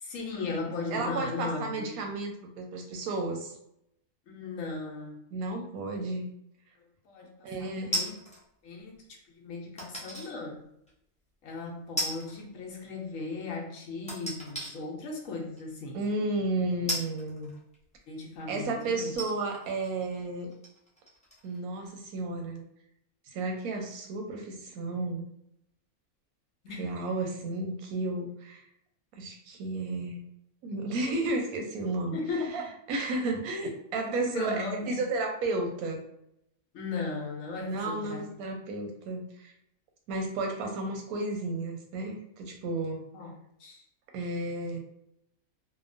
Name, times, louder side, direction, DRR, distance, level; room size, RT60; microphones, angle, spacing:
voice 1, 0.0-2.0 4.3-5.2 7.0-8.1 8.6-9.0 9.3-10.7 11.4-16.0 18.1-19.1 26.6-26.9 32.1-32.6 34.1-35.0 36.7-38.3 43.1-43.3 43.6-43.8, left 3 dB, 70° left, -1 dB, 1.0 m, -37 dB
voice 2, 0.9-3.5 5.3-6.3 7.4-8.1 15.9-17.5 18.5-20.5 21.4-22.6 23.3-25.2 26.8-28.6 29.1-30.2 30.6-32.2 32.5-36.0 37.6-39.5 40.1-43.0 44.1-44.8, right 2 dB, 90° right, 2 dB, 1.1 m, -33 dB
sound 1, 7.9-8.4 9.8-10.3 10.9-11.0 12.0-12.4 12.7-12.8 14.1-14.7 15.6-15.7 16.9-18.0 18.6-18.7 19.1-21.6 21.8-21.9, right 1 dB, 10° left, 0.4 m, -35 dB
2.9 x 2.1 x 2.5 m, 0.77 s
omnidirectional pair, 1.5 m